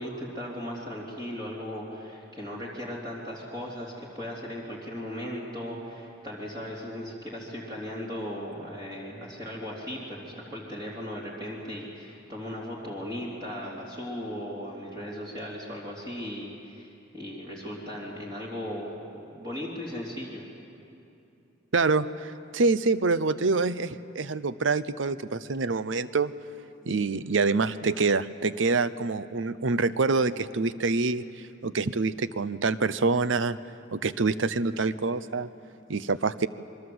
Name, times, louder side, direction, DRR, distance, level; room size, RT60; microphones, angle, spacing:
voice 1, 0.0-20.4, equal, 20° right, -4 dB, 3.3 m, -37 dB
voice 2, 21.7-26.3 26.9-31.2 31.6-33.6 33.9-35.5 35.9-36.5, right 3 dB, 75° right, 15 dB, 0.7 m, -26 dB
27.5 x 23.0 x 7.9 m, 2.7 s
head